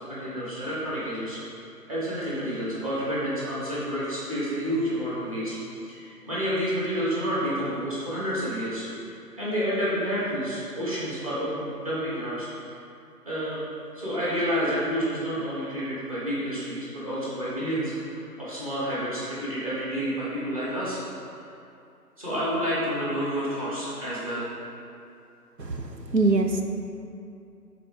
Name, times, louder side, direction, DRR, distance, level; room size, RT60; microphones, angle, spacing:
voice 1, 0.0-1.4 1.9-5.6 5.9-8.8 9.4-12.8 13.2-13.6 13.9-21.0 22.2-24.5, equal, 20° right, -10 dB, 1.4 m, -29 dB
voice 2, 25.6-26.6, right 3 dB, 85° right, 4 dB, 0.9 m, -24 dB
9.9 x 4.2 x 3.3 m, 2.6 s
figure-of-eight pair, 160°, 48 cm